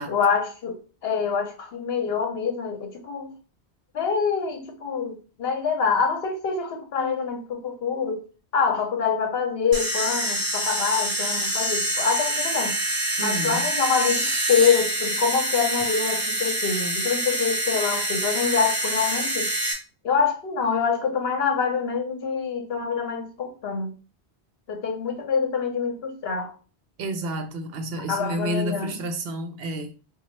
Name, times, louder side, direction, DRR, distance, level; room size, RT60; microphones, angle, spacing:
voice 1, 0.1-3.3 3.9-8.2 8.5-12.8 13.2-19.5 20.0-23.9 24.7-26.5 28.1-29.0, left 6 dB, 70° left, 0.9 m, -25 dB
sound 1, 9.7-19.7, right 1 dB, 20° right, 0.7 m, -26 dB
voice 2, 13.2-13.7 27.0-29.9, right 1 dB, 70° right, 0.7 m, -30 dB
3.9 x 2.3 x 3.1 m
omnidirectional pair, 1.1 m